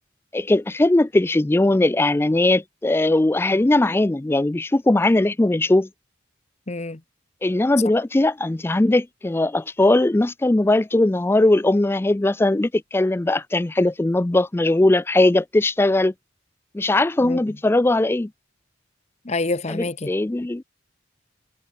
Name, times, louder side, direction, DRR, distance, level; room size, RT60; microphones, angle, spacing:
voice 1, 0.3-5.9 7.4-16.1 16.7-18.3 19.7-20.6, left 2 dB, 10° left, 0.3 m, -19 dB
voice 2, 6.7-7.0 17.2-17.6 19.2-20.1, left 2 dB, 35° left, 1.0 m, -27 dB
head